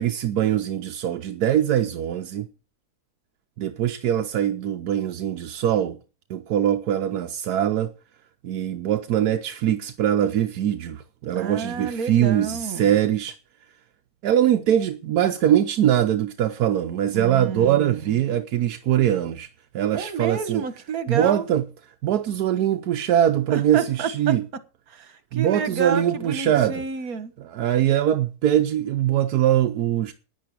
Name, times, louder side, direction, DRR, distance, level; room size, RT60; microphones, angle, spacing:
voice 1, 0.0-2.5 3.6-6.0 6.3-7.9 8.4-13.4 14.2-19.5 19.7-20.7 21.1-21.6 22.0-24.4 25.3-26.8 27.5-30.1, right 11 dB, 85° right, 1.3 m, -22 dB
voice 2, 11.3-12.9 17.1-18.2 19.9-21.5 23.5-24.3 24.9-27.3, right 6 dB, 70° right, 1.9 m, -30 dB
10.5 x 10.0 x 6.6 m
omnidirectional pair, 1.6 m